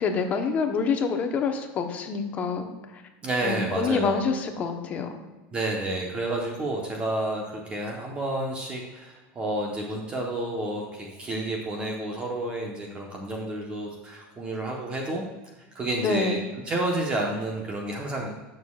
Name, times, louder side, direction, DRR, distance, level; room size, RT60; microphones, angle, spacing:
voice 1, 0.0-2.7 2.9-3.0 3.4-5.1 15.9-16.4, left 5 dB, 30° left, 5 dB, 1.0 m, -27 dB
voice 2, 3.2-4.2 5.5-15.2 15.7-16.4 16.7-18.3, right 1 dB, 20° right, 0 dB, 1.0 m, -30 dB
14.5 x 6.5 x 2.4 m, 1.2 s
supercardioid pair, 160°, 5 cm